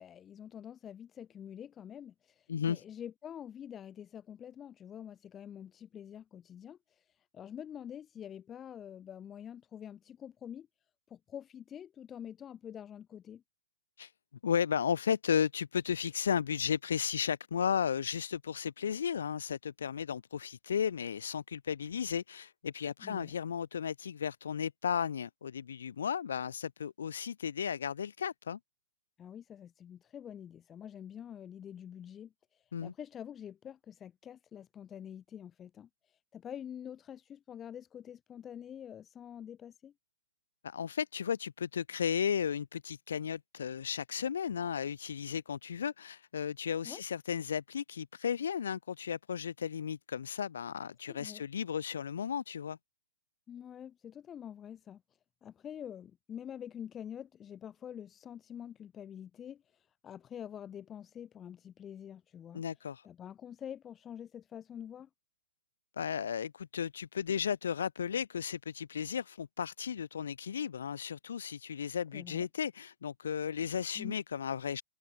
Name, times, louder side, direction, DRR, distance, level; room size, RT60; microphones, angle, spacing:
voice 1, 0.0-10.7 11.1-13.4 23.0-23.3 29.2-39.9 46.8-47.0 51.1-51.4 53.5-55.0 55.4-62.6 63.0-65.1 72.1-72.4 73.9-74.2, left 9 dB, 20° left, 1.1 m, -46 dB
voice 2, 2.5-2.8 14.0-14.1 14.4-28.6 32.7-32.9 40.6-52.8 62.5-63.0 66.0-74.8, left 7 dB, 65° left, 0.7 m, -34 dB
figure-of-eight pair, 115°, 0 cm